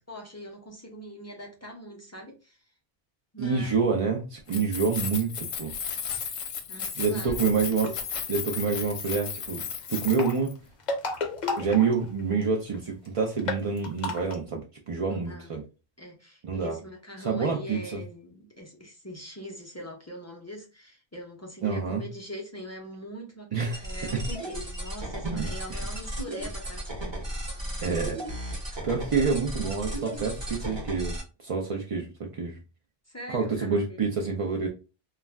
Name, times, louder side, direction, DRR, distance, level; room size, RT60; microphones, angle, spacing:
voice 1, 0.1-2.6 3.3-3.9 6.7-7.4 15.0-15.5 16.0-26.8 33.1-34.0, equal, 25° left, 0.3 m, -42 dB
voice 2, 3.4-5.7 7.0-8.0 8.3-9.6 9.9-10.6 11.6-15.6 16.4-16.8 17.2-18.0 21.6-22.0 23.5-23.8 25.2-25.8 27.8-32.6 33.3-34.7, right 5 dB, 60° right, 0.3 m, -28 dB
Keys jangling, 4.4-10.5, left 7 dB, 75° left, 0.8 m, -35 dB
sound 1, 7.7-8.2 9.9-12.4 12.7-12.8 13.1-13.2 13.4-14.3, left 3 dB, 50° left, 0.7 m, -32 dB
sound 2, 23.7-31.2, right 1 dB, 30° right, 0.8 m, -35 dB
2.3 x 2.1 x 3.3 m
omnidirectional pair, 1.1 m